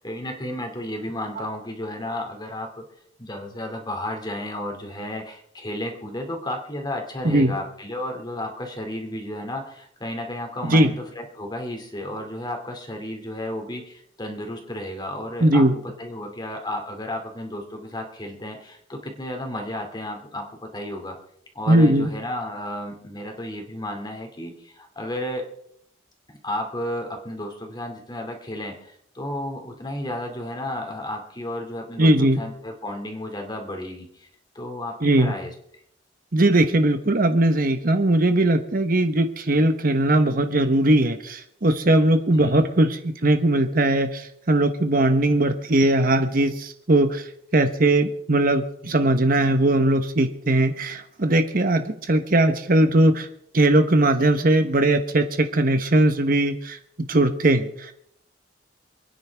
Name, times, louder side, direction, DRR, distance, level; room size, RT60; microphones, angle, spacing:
voice 1, 0.0-2.8 3.2-15.6 16.0-21.2 21.5-25.5 26.4-34.3 34.5-35.5 42.3-42.7, left 1 dB, 25° left, 3 dB, 2.6 m, -33 dB
voice 2, 15.4-15.8 21.7-22.1 32.0-32.4 35.0-35.3 36.3-53.3 53.5-56.8 57.1-57.9, right 1 dB, 50° right, 8 dB, 1.1 m, -19 dB
28.5 x 9.9 x 3.5 m, 0.72 s
head